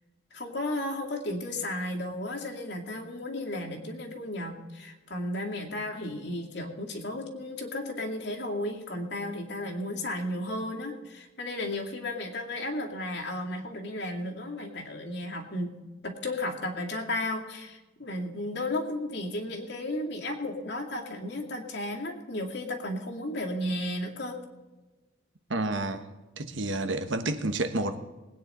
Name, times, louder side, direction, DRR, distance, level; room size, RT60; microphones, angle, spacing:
voice 1, 0.3-15.7 16.0-24.4, left 1 dB, 60° left, 0 dB, 2.4 m, -34 dB
voice 2, 25.5-26.0 26.4-28.0, right 2 dB, 75° right, 8 dB, 1.2 m, -29 dB
20.5 x 9.5 x 4.3 m, 1.2 s
head